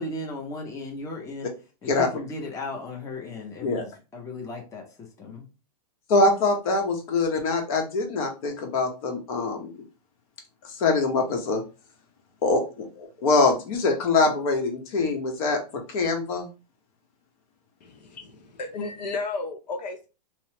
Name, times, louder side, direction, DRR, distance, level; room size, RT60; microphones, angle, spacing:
voice 1, 0.0-1.5 1.8-5.4, left 2 dB, 15° left, 0.7 m, -36 dB
voice 2, 6.1-9.7 10.8-11.6 12.4-15.6 15.9-16.5, left 3 dB, 55° left, 1.0 m, -23 dB
voice 3, 17.8-20.1, left 3 dB, 80° left, 0.7 m, -33 dB
2.9 x 2.1 x 2.8 m
hypercardioid pair, 130°, 21 cm